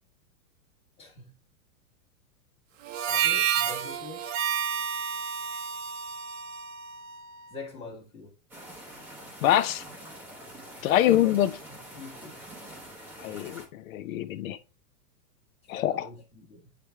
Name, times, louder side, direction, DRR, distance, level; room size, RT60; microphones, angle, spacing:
voice 1, 1.0-1.3 3.1-4.2 7.5-8.3 10.8-12.4 15.7-16.7, left 4 dB, 10° left, 1.3 m, -43 dB
Harmonica, 2.9-7.5, right 9 dB, 55° right, 0.8 m, -30 dB
sound 1, 8.5-13.7, right 1 dB, 5° right, 0.7 m, -45 dB
voice 2, 9.4-9.8 10.8-11.5 13.2-14.6 15.7-16.1, left 12 dB, 55° left, 0.8 m, -25 dB
8.8 x 3.4 x 3.3 m
supercardioid pair, 160°, 48 cm